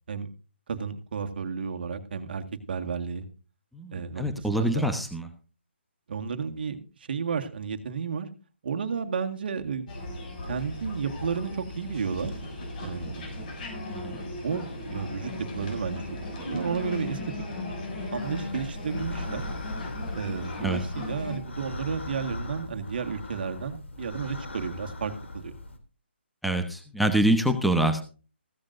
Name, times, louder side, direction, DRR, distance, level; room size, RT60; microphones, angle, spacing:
voice 1, 0.7-3.3 3.9-4.9 6.1-8.3 8.6-9.9 10.5-12.4 12.8-13.4 14.4-16.0 16.3-17.2 18.1-19.4 20.1-25.5, right 6 dB, 55° right, 7 dB, 1.8 m, -32 dB
voice 2, 3.7-5.3 13.9-14.2 20.6-20.8 26.4-28.0, right 1 dB, ahead, 6 dB, 1.0 m, -25 dB
sound 1, 9.9-21.4, left 2 dB, 40° left, 7.0 m, -37 dB
sound 2, 18.2-25.8, left 2 dB, 80° left, 3.1 m, -39 dB
15.5 x 14.0 x 2.7 m, 0.35 s
hypercardioid pair, 150°, 6 cm